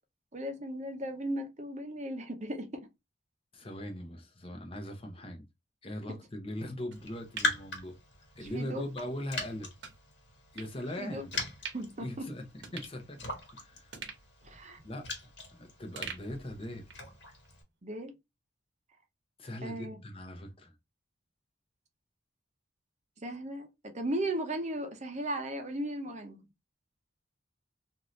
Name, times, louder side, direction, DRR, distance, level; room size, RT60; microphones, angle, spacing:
voice 1, 0.3-2.9 8.4-8.9 11.0-11.2 11.7-12.3 14.4-14.8 17.8-18.1 19.6-20.0 23.2-26.4, right 1 dB, 40° right, 0.7 m, -36 dB
voice 2, 3.5-5.4 5.8-8.0 8.3-9.7 10.5-11.3 12.0-12.4 12.7-14.0 14.8-15.1 15.5-16.9 19.4-20.7, left 1 dB, 30° left, 0.8 m, -40 dB
Raindrop, 6.9-17.6, left 3 dB, 70° left, 1.5 m, -41 dB
sound 1, 6.9-8.5 8.9-9.0 9.8-10.0 10.6-10.7 11.3-12.0 12.3-12.4 12.6-13.5 13.9-15.5 15.9-17.1 17.4-17.5, right 6 dB, 70° right, 0.9 m, -46 dB
2.7 x 2.6 x 3.1 m
head